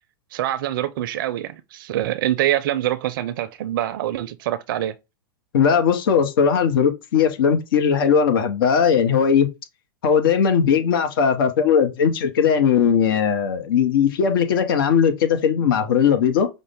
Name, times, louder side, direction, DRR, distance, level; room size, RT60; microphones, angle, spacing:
voice 1, 0.3-4.9, right 13 dB, 65° right, 0.4 m, -25 dB
voice 2, 5.5-9.5 10.0-16.5, left 7 dB, 70° left, 0.8 m, -18 dB
5.2 x 2.1 x 3.4 m
hypercardioid pair, 105°, 12 cm